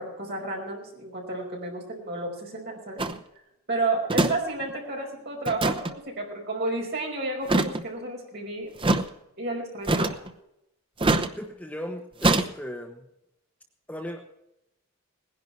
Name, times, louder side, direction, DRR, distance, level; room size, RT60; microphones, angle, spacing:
voice 1, 0.0-3.0 3.7-8.7 9.4-10.2, right 2 dB, 50° right, -1 dB, 5.1 m, -31 dB
sound 1, 3.0-3.2 4.1-4.4 4.6-4.7 5.4-5.9 7.4-7.8 8.8-9.0 9.9-10.3 11.0-11.3 12.2-12.5, right 2 dB, 25° right, 0.8 m, -23 dB
voice 2, 11.4-13.0 13.9-14.2, equal, 5° left, 3 dB, 1.1 m, -37 dB
19.5 x 11.0 x 4.6 m, 0.84 s
head